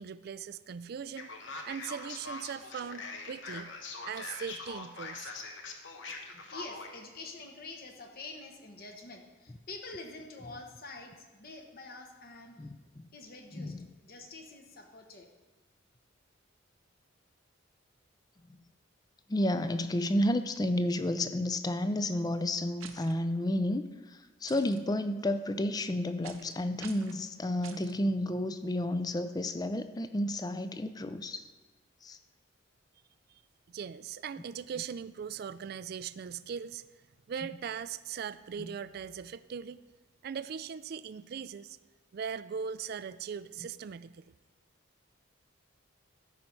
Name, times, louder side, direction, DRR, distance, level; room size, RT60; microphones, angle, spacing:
voice 1, 0.0-1.3 1.6-3.7 4.1-5.3 33.3-33.4 33.7-36.9 37.3-39.8 40.2-41.8 42.1-44.2, right 7 dB, 50° right, 15 dB, 0.3 m, -40 dB
Male speech man speaking, 1.2-7.0, left 3 dB, 65° left, 1.0 m, -42 dB
voice 2, 6.5-12.6 13.1-15.3, left 3 dB, 50° left, 3 dB, 1.1 m, -47 dB
voice 3, 12.6-13.1 13.5-13.9 18.5-18.6 19.3-31.5 32.0-32.2 38.6-38.7, left 1 dB, 20° left, 11 dB, 0.4 m, -31 dB
sound 1, 22.8-23.1 24.5-24.8 26.2-26.5 26.8-27.2 27.6-27.9, right 8 dB, 90° right, 0.7 m, -48 dB
13.0 x 5.4 x 4.5 m, 1.3 s
head